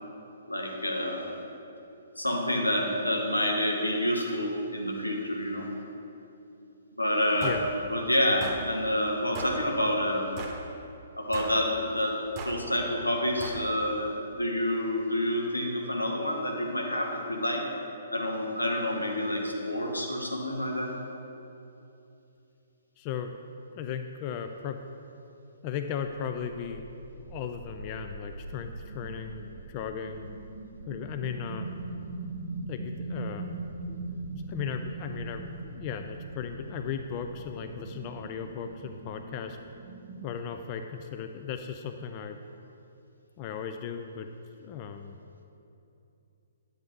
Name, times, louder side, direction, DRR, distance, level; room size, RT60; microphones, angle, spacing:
voice 1, 0.5-1.2 2.2-5.7 7.0-7.6 7.9-10.3 11.2-12.2 12.4-17.6 18.1-20.9, left 1 dB, 90° left, 0 dB, 1.4 m, -28 dB
sound 1, 7.4-7.6 8.4-8.6 9.3-9.6 10.4-10.6 11.3-11.6 12.4-12.6 13.4-13.6, right 3 dB, 25° right, 1.1 m, -39 dB
voice 2, 23.0-23.3 23.7-24.8 25.6-26.9 27.1-30.3 30.9-31.7 32.7-33.5 33.9-39.6 40.2-42.4 43.4-44.3 44.6-45.1, left 7 dB, 35° left, 6 dB, 0.4 m, -36 dB
sound 2, 26.3-40.3, right 2 dB, 50° right, 0.7 m, -41 dB
10.5 x 8.0 x 3.3 m, 2.8 s
figure-of-eight pair, 125°, 0 cm